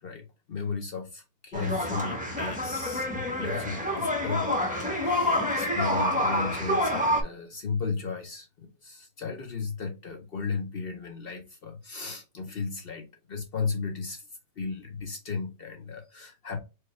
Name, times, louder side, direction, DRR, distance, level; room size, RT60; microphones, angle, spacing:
voice 1, 0.0-14.2 14.6-16.6, left 4 dB, 50° left, 0.8 m, -35 dB
sound 1, 1.5-7.2, left 1 dB, 10° right, 0.6 m, -27 dB
4.6 x 2.3 x 3.0 m
omnidirectional pair, 1.4 m